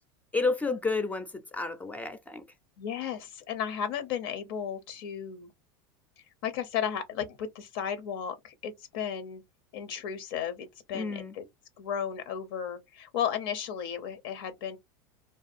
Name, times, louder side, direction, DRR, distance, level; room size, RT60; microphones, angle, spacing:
voice 1, 0.3-2.4 10.9-11.3, left 3 dB, 10° left, 0.4 m, -31 dB
voice 2, 2.8-5.5 6.2-9.4 9.7-11.5 11.8-14.8, left 8 dB, 75° left, 0.6 m, -34 dB
2.5 x 2.2 x 2.5 m
supercardioid pair, 120°, 12 cm